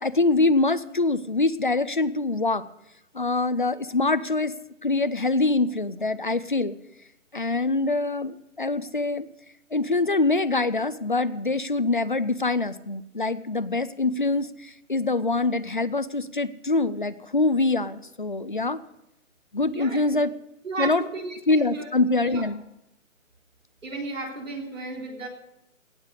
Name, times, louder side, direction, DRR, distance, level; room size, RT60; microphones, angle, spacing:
voice 1, 0.0-2.6 3.1-4.5 4.8-6.8 7.3-9.3 9.7-18.8 19.5-20.3 20.8-21.0 21.5-22.6, left 3 dB, 40° left, 13 dB, 0.4 m, -24 dB
voice 2, 19.7-20.0 20.6-21.9 22.2-22.5 23.8-25.3, right 3 dB, 75° right, 1 dB, 3.7 m, -34 dB
18.0 x 7.5 x 6.4 m, 0.86 s
hypercardioid pair, 175°, 40 cm